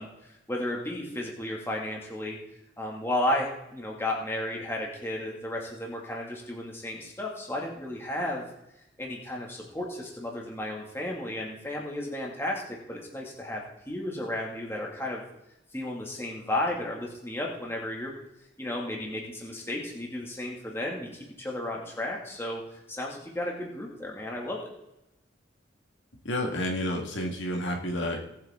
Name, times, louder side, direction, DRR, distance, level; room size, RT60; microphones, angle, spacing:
voice 1, 0.0-2.4 2.8-8.4 9.0-15.2 15.7-18.2 18.6-24.7, left 1 dB, 10° left, -2 dB, 2.2 m, -33 dB
voice 2, 26.2-28.3, left 1 dB, 75° left, 1 dB, 1.9 m, -30 dB
18.5 x 8.7 x 3.8 m, 0.87 s
head